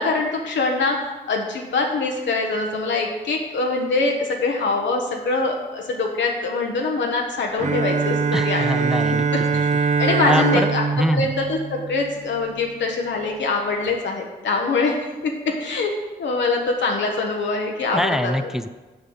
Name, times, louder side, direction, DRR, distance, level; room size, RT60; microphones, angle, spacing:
voice 1, 0.0-8.2 8.4-9.2 9.8-10.8 11.1-15.9 16.2-18.3, left 3 dB, 80° left, 0 dB, 1.0 m, -24 dB
Bowed string instrument, 7.6-12.5, right 5 dB, 40° right, 0.8 m, -22 dB
voice 2, 8.3-9.6 10.3-10.7 11.0-11.3 17.9-18.7, equal, ahead, 11 dB, 0.5 m, -24 dB
6.8 x 5.4 x 7.0 m, 1.2 s
cardioid pair, 50°, 19 cm